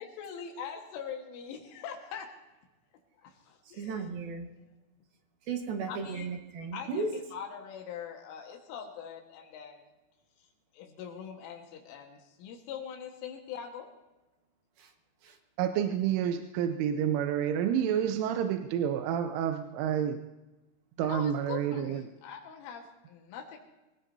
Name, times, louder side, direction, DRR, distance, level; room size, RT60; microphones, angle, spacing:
voice 1, 0.0-2.3 3.2-4.0 5.9-6.3 6.7-9.9 10.7-13.9 21.0-23.6, left 7 dB, 90° left, 1 dB, 4.1 m, -42 dB
voice 2, 3.7-4.5 5.4-7.2 14.8-14.9 15.2-15.4, right 4 dB, 60° right, 4 dB, 2.8 m, -35 dB
voice 3, 15.6-20.3 21.0-22.0, right 9 dB, 85° right, 7 dB, 3.2 m, -29 dB
25.0 x 17.5 x 2.7 m, 1.1 s
omnidirectional pair, 5.5 m